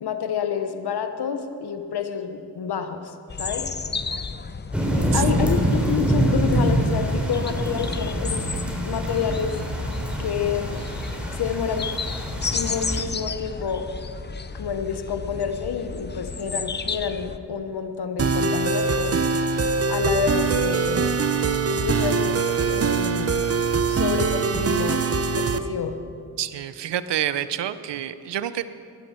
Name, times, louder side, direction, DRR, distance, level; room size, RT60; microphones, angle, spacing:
voice 1, 0.0-3.1 3.4-3.7 4.9-8.4 8.8-9.5 10.2-10.8 11.3-11.9 12.5-13.8 14.5-19.2 19.9-21.1 21.7-22.4 22.7-23.5 23.9-25.0 25.3-26.0, left 6 dB, 70° left, 8 dB, 1.1 m, -28 dB
sound 1, 3.3-17.4, left 5 dB, 25° left, 0.6 m, -33 dB
sound 2, 4.7-13.0, right 1 dB, 5° right, 3.6 m, -25 dB
sound 3, 18.2-25.6, right 5 dB, 35° right, 0.8 m, -23 dB
voice 2, 26.4-28.6, right 11 dB, 80° right, 13 dB, 0.7 m, -28 dB
16.5 x 11.5 x 4.4 m, 2.3 s
cardioid pair, 50°, 41 cm